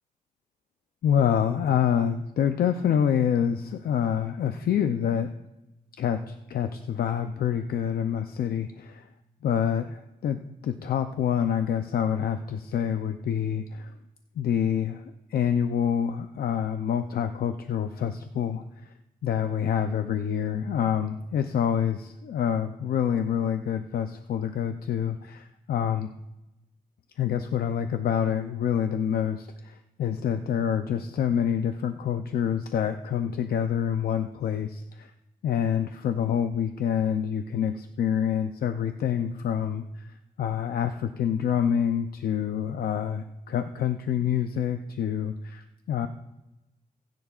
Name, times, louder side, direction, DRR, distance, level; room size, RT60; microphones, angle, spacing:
voice 1, 1.0-5.3 6.0-9.1 9.4-10.4 10.6-13.9 14.4-15.0 15.3-18.6 19.2-26.1 27.2-35.1 35.4-40.0 40.4-46.1, left 8 dB, 80° left, 8 dB, 0.6 m, -27 dB
24.0 x 10.5 x 2.4 m, 0.94 s
wide cardioid pair, 155°, 15 cm